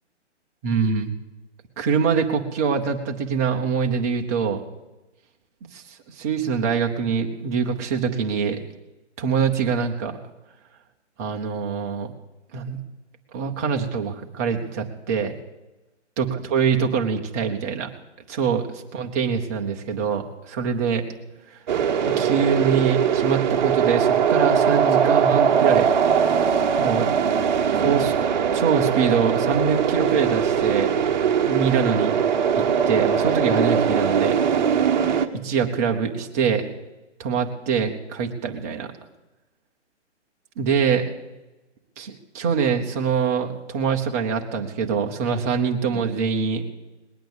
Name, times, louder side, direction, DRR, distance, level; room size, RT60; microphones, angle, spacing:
voice 1, 0.6-1.1 1.8-4.6 5.7-5.8 6.1-8.6 9.2-10.2 11.2-12.1 12.5-12.8 13.3-15.3 16.2-17.9 18.3-21.0 22.2-25.9 26.5-27.1 27.7-28.1 28.5-30.9 31.4-32.2 32.5-34.4 35.4-36.7 37.2-38.9 40.6-41.0 42.0-46.6, right 6 dB, 15° right, 2 dB, 0.7 m, -24 dB
sound 1, 21.7-35.3, right 7 dB, 40° right, 1.1 m, -21 dB
20.0 x 9.0 x 8.0 m, 1.1 s
hypercardioid pair, 160°, 35 cm